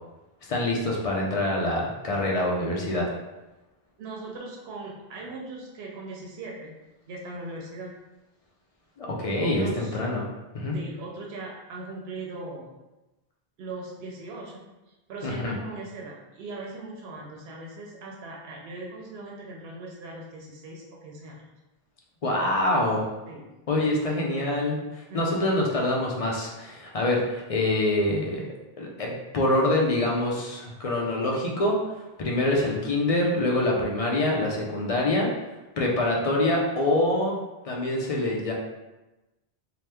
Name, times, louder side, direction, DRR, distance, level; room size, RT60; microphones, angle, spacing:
voice 1, 0.5-3.1 9.0-10.3 10.5-10.8 15.2-15.5 22.2-23.1 23.7-28.4 28.8-31.8 32.2-35.3 35.8-37.4 37.6-38.5, left 1 dB, 50° left, -2 dB, 0.4 m, -25 dB
voice 2, 4.0-8.0 9.4-10.0 10.7-12.7 13.6-21.4 23.3-23.5 25.1-25.4, right 2 dB, 80° right, -2 dB, 0.8 m, -39 dB
2.9 x 2.0 x 3.3 m, 1.0 s
omnidirectional pair, 1.0 m